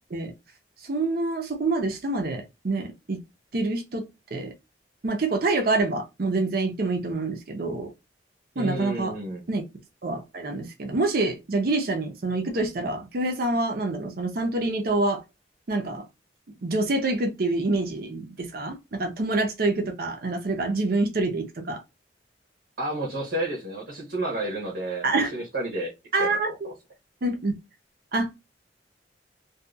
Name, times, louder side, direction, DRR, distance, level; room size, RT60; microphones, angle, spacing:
voice 1, 0.8-3.2 3.5-4.0 4.3-4.5 5.0-7.9 8.6-9.1 9.5-9.6 10.0-15.2 15.7-16.1 16.6-21.8 25.0-25.3 26.1-26.7 27.2-27.6 28.1-28.4, right 2 dB, 55° right, 0.6 m, -26 dB
voice 2, 8.5-9.4 22.8-25.9 26.2-26.7, right 1 dB, 70° right, 1.0 m, -31 dB
2.7 x 2.2 x 2.3 m
head